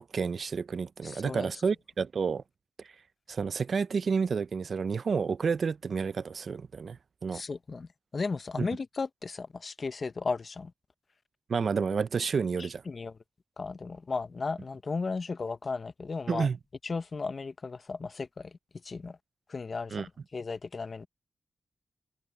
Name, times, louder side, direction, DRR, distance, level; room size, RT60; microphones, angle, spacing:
voice 1, 0.0-2.4 3.3-7.4 8.6-8.7 11.5-12.8 16.3-16.6 19.9-20.1, right 5 dB, 55° right, 0.4 m, -30 dB
voice 2, 1.0-1.5 7.3-7.9 8.1-10.7 12.6-13.1 13.6-16.5 16.8-18.6 18.8-19.2 19.5-21.1, left 4 dB, 40° left, 0.6 m, -35 dB
wide cardioid pair, 135°, 0 cm